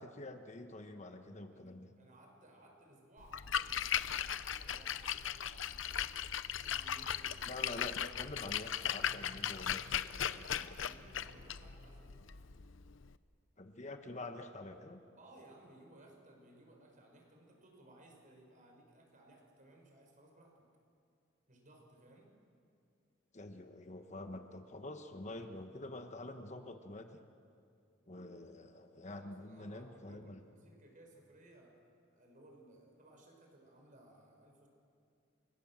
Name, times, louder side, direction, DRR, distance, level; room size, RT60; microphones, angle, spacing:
voice 1, 0.0-1.9 7.5-10.1 13.6-15.0 23.3-27.2 28.1-30.4, left 2 dB, 35° left, 6 dB, 1.3 m, -47 dB
voice 2, 1.5-7.7 10.2-12.2 15.2-20.6 21.5-22.4 29.1-31.8 32.1-34.7, right 1 dB, 40° right, 2 dB, 5.7 m, -61 dB
Splash splatter, 3.2-13.1, left 9 dB, 70° left, 0.7 m, -38 dB
29.5 x 25.0 x 7.5 m, 2.4 s
head